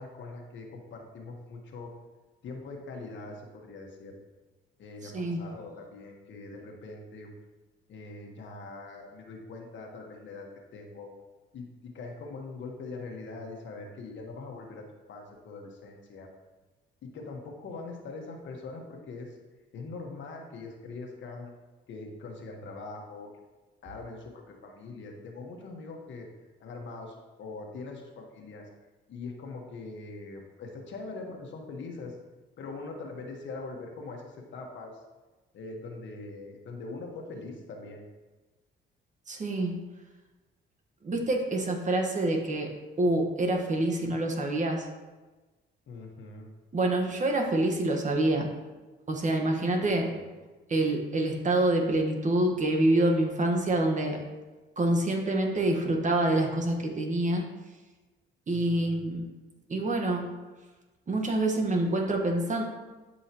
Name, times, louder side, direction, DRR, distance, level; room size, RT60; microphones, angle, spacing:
voice 1, 0.0-1.9 2.4-4.2 4.8-7.3 7.9-11.1 11.5-16.3 17.0-19.3 19.7-21.5 21.9-23.3 23.8-26.3 26.6-28.7 29.1-32.2 32.6-35.0 35.5-38.0 45.9-46.5 50.1-50.3 58.5-59.0, left 3 dB, 70° left, 1 dB, 1.5 m, -42 dB
voice 2, 5.0-5.4 39.3-39.8 41.0-42.7 43.0-44.8 46.7-48.5 49.1-50.1 50.7-54.2 54.8-57.5 58.5-59.2 59.7-60.3 61.1-62.6, right 1 dB, 40° right, 2 dB, 1.4 m, -26 dB
11.5 x 5.5 x 3.0 m, 1.2 s
cardioid pair, 90°, 20 cm